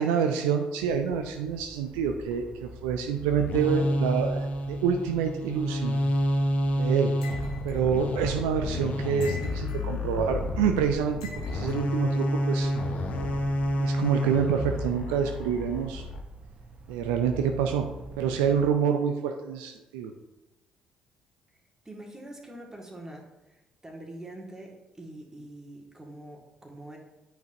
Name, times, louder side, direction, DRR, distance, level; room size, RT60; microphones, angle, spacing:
voice 1, 0.0-6.0 6.8-7.1 7.6-12.7 13.7-16.0 16.9-20.1, right 7 dB, 70° right, 5 dB, 0.5 m, -27 dB
sound 1, 0.8-18.7, right 2 dB, 40° right, 1.0 m, -47 dB
sound 2, 3.1-16.2, left 1 dB, 50° left, 0.9 m, -29 dB
sound 3, 7.2-7.8 9.2-9.9 11.2-11.8, left 4 dB, 80° left, 0.9 m, -44 dB
voice 2, 21.9-27.0, right 1 dB, 15° right, -1 dB, 2.0 m, -44 dB
8.9 x 5.3 x 2.8 m, 1.0 s
figure-of-eight pair, 45°, 3 cm